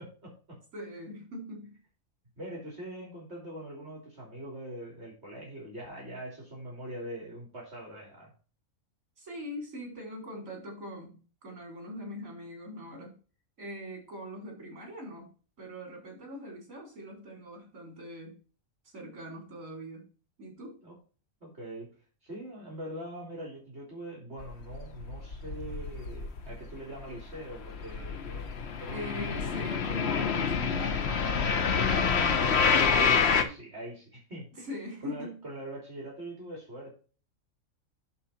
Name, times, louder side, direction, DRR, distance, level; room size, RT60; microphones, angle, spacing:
voice 1, 0.0-0.6 2.4-8.3 20.8-21.0 21.4-21.9 22.2-29.5 31.7-32.8 33.2-34.7 35.0-36.9, right 1 dB, 50° right, -3 dB, 3.6 m, -42 dB
voice 2, 0.7-1.8 9.2-13.1 13.6-18.4 18.9-20.1 20.4-20.8 28.9-32.1 34.6-35.4, equal, 70° right, 0 dB, 4.6 m, -42 dB
sound 1, 24.4-26.7 27.0-33.4, left 6 dB, 55° left, 1.2 m, -27 dB
11.5 x 4.5 x 4.3 m, 0.36 s
omnidirectional pair, 1.4 m